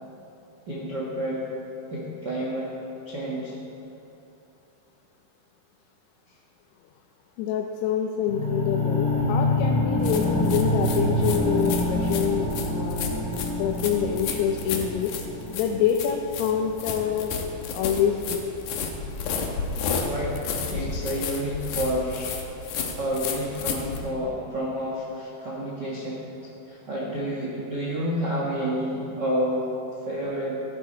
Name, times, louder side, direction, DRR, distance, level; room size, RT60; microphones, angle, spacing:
voice 1, 0.7-1.5 1.9-2.7 3.0-3.6 20.0-22.4 23.0-29.7 30.1-30.6, equal, 70° right, -5 dB, 1.0 m, -29 dB
voice 2, 7.4-13.2 13.6-15.1 15.5-17.3 17.7-18.5 20.8-20.9, left 8 dB, 85° left, 3 dB, 2.7 m, -26 dB
sound 1, 8.3-18.2, left 1 dB, 25° right, 3.3 m, -27 dB
sound 2, 10.0-24.0, left 5 dB, 65° left, 2.0 m, -32 dB
15.5 x 11.0 x 4.3 m, 3.0 s
omnidirectional pair, 4.7 m